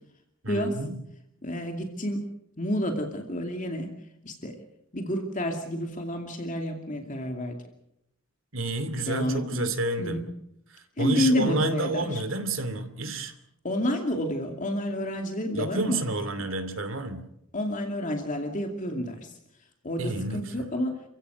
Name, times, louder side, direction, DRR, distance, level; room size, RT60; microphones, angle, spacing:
voice 1, 0.4-1.0 8.5-10.2 10.7-13.3 15.5-17.2 20.0-20.7, right 2 dB, 65° right, 10 dB, 2.7 m, -30 dB
voice 2, 1.4-2.2 2.6-3.9 4.2-4.5 4.9-7.6 9.0-9.7 10.0-10.2 11.0-12.2 13.6-16.0 17.5-19.4 19.8-21.0, left 1 dB, 40° left, 3 dB, 2.5 m, -29 dB
29.0 x 15.5 x 8.2 m, 0.83 s
head